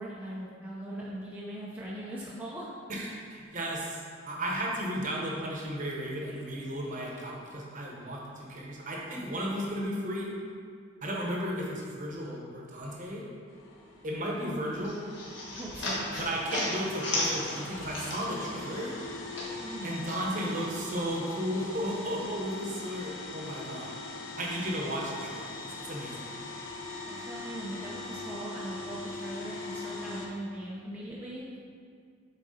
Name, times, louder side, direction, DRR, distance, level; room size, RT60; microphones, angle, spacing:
voice 1, 0.0-2.7 15.5-16.3 19.6-19.9 27.1-31.6, right 1 dB, 5° right, -7 dB, 0.6 m, -40 dB
voice 2, 2.9-10.3 11.0-13.2 14.0-15.0 16.2-18.9 19.8-23.9 24.4-25.5 25.8-26.3, equal, 35° right, -2 dB, 1.0 m, -34 dB
sound 1, 13.5-30.3, left 2 dB, 75° left, 0.8 m, -41 dB
sound 2, 14.8-18.5 18.8-20.2, left 1 dB, 55° left, 1.6 m, -34 dB
7.5 x 4.1 x 4.2 m, 2.1 s
head